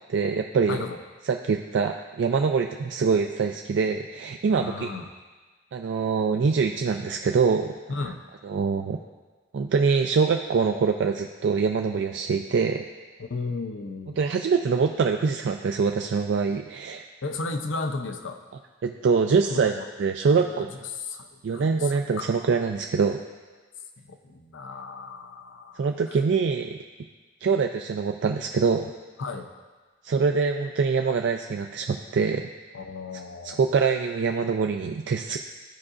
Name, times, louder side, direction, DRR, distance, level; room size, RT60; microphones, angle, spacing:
voice 1, 0.1-0.8 1.2-4.9 5.7-7.7 8.4-9.0 9.5-12.8 14.2-17.1 18.8-20.7 21.4-23.2 25.8-26.8 27.4-28.9 30.0-32.5 33.4-35.4, right 5 dB, 65° right, 4 dB, 0.3 m, -24 dB
voice 2, 4.5-5.1 7.9-8.2 13.2-14.2 17.2-18.4 19.5-19.6 20.3-22.4 24.1-25.9 29.2-29.5 32.7-33.7, left 3 dB, 80° left, 6 dB, 0.6 m, -34 dB
14.0 x 4.8 x 2.5 m, 1.4 s
head